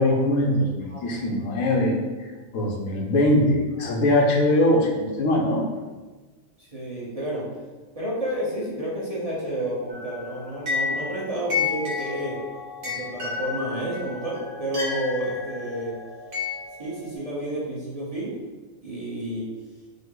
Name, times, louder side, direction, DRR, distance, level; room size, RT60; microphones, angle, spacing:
voice 1, 0.0-5.6, left 1 dB, 80° left, 0 dB, 1.1 m, -22 dB
voice 2, 6.6-7.5 7.9-12.4 12.8-15.9 16.8-18.4 18.8-19.5, right 1 dB, 35° right, -7 dB, 0.8 m, -30 dB
sound 1, 9.9-17.2, left 5 dB, 85° right, 1.5 m, -32 dB
5.3 x 2.0 x 3.8 m, 1.3 s
omnidirectional pair, 1.4 m